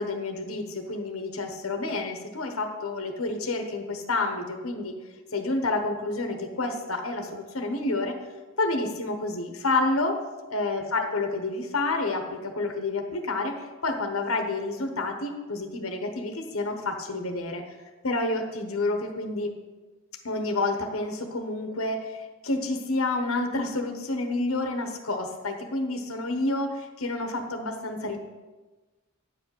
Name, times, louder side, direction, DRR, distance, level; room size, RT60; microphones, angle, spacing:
voice 1, 0.0-5.0 5.3-8.2 8.6-10.2 10.5-13.6 13.8-17.6 18.0-19.5 20.2-28.2, left 2 dB, 80° left, 5 dB, 1.2 m, -29 dB
9.6 x 5.0 x 8.0 m, 1.2 s
head